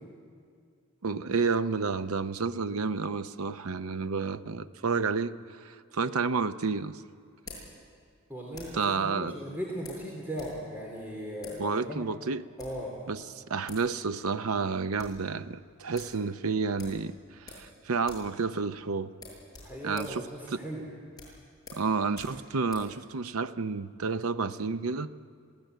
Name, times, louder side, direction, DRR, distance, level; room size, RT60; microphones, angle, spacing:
voice 1, 1.0-5.3 5.6-7.0 8.7-9.3 11.6-12.4 13.1-17.1 17.4-19.1 19.8-20.2 20.5-20.6 21.7-25.1, right 4 dB, 80° right, 12 dB, 0.7 m, -30 dB
sound 1, 6.0-8.9 9.8-10.6 10.8-10.9 11.4-11.6 12.4-12.9 13.4-13.5 13.7-13.9 14.2-14.3 14.6-15.2 15.6-15.7 15.9-16.2 16.8-17.7 18.0-18.3 18.6-18.7 19.1-22.9, left 3 dB, 15° left, 8.0 m, -49 dB
voice 2, 8.3-12.0 12.6-13.0 19.6-20.8, equal, 10° right, -3 dB, 3.0 m, -38 dB
26.0 x 16.5 x 9.2 m, 2.1 s
head